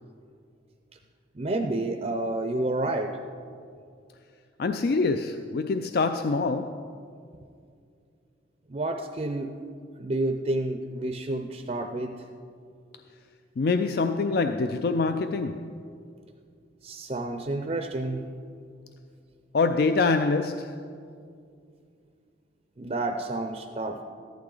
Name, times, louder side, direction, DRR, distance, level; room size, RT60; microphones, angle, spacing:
voice 1, 1.3-3.1 8.7-9.5 10.0-12.2 16.8-18.2 22.8-24.0, right 2 dB, 35° right, 0.5 m, -29 dB
voice 2, 4.6-7.0 13.6-15.8 19.5-20.9, left 3 dB, 55° left, 0.3 m, -25 dB
14.5 x 11.5 x 3.9 m
head